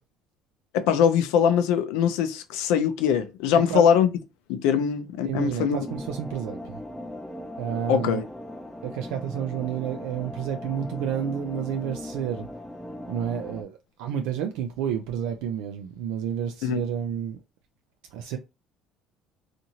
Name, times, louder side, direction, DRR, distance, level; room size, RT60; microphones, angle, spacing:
voice 1, 0.7-4.1 4.5-5.8 7.9-8.2 16.6-16.8, left 8 dB, 90° left, 0.4 m, -22 dB
voice 2, 3.5-3.9 4.7-4.8 5.2-6.8 7.6-8.2 8.8-12.5 13.1-17.4 18.1-18.4, right 9 dB, 90° right, 0.4 m, -30 dB
sound 1, 5.8-13.6, left 1 dB, 5° left, 0.4 m, -39 dB
2.8 x 2.5 x 2.8 m
cardioid pair, 125°, 0 cm